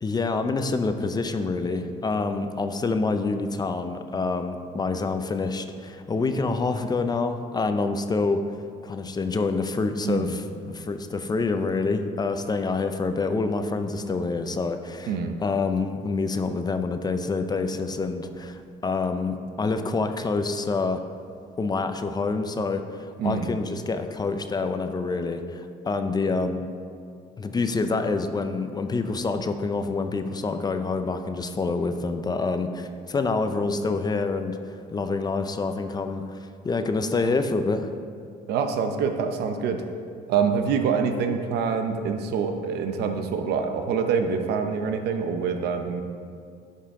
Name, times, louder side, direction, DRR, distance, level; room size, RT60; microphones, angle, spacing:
voice 1, 0.0-8.4 8.8-15.1 15.4-21.0 21.6-26.7 27.4-36.4 36.6-37.9, left 3 dB, 25° left, 8 dB, 0.5 m, -27 dB
voice 2, 10.0-10.4 15.1-15.4 23.2-23.5 38.5-39.8 40.3-46.0, right 6 dB, 75° right, 6 dB, 0.8 m, -26 dB
11.5 x 5.6 x 3.7 m, 2.3 s
cardioid pair, 110°, 17 cm